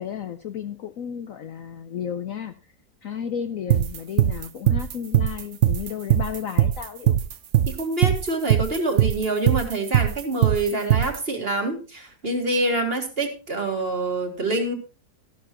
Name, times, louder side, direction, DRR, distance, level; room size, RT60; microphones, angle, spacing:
voice 1, 0.0-2.5 3.0-7.2, left 8 dB, 60° left, 9 dB, 0.9 m, -33 dB
sound 1, 3.7-11.2, right 11 dB, 60° right, 0.8 m, -20 dB
voice 2, 7.7-14.7, right 2 dB, 35° right, 4 dB, 2.0 m, -26 dB
13.5 x 12.0 x 3.0 m, 0.33 s
omnidirectional pair, 1.9 m